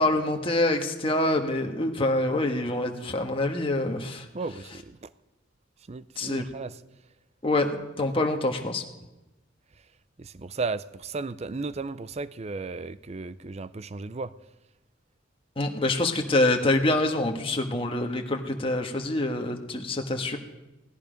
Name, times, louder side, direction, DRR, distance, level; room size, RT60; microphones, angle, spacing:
voice 1, 0.0-4.2 6.2-6.5 7.4-8.8 15.6-20.4, left 2 dB, 30° left, 1.4 m, -26 dB
voice 2, 4.3-5.1 5.9-6.8 10.2-14.3, right 3 dB, 35° right, 0.5 m, -35 dB
17.0 x 13.5 x 5.1 m
head